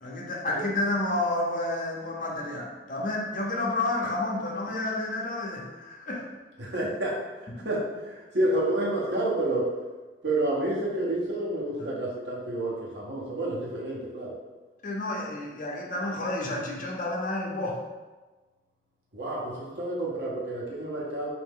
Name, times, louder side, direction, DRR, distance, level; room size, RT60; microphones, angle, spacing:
voice 1, 0.0-6.3 7.5-7.7 11.8-12.0 14.8-17.8, left 2 dB, 45° left, -2 dB, 0.7 m, -30 dB
voice 2, 6.6-9.8 10.2-14.3 19.1-21.3, right 1 dB, 75° right, -5 dB, 1.1 m, -29 dB
4.2 x 2.7 x 3.6 m, 1.3 s
head